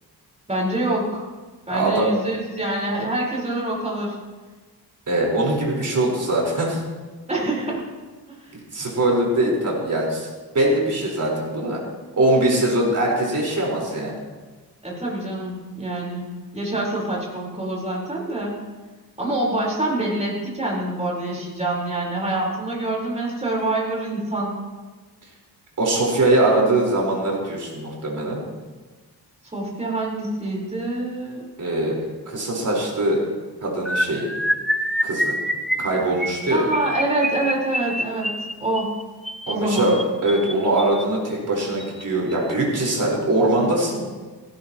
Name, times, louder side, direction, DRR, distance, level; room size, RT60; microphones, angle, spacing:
voice 1, 0.5-1.3 1.7-4.2 7.3-7.9 8.3-8.6 14.8-16.3 16.5-18.5 19.2-24.5 29.5-31.5 36.5-38.3 38.6-38.9 39.5-39.9, right 2 dB, 15° right, -4 dB, 4.3 m, -26 dB
voice 2, 1.7-2.1 5.1-6.8 8.7-11.8 12.1-14.2 25.8-28.4 31.6-32.0 32.3-33.2 33.6-34.3 35.0-35.3 35.8-36.7 39.5-44.0, right 1 dB, 45° right, -3 dB, 4.4 m, -22 dB
sound 1, 33.9-41.0 41.8-42.0 42.3-42.5 42.8-43.0, equal, ahead, 0.6 m, -27 dB
17.0 x 17.0 x 3.0 m, 1.4 s
wide cardioid pair, 170°, 41 cm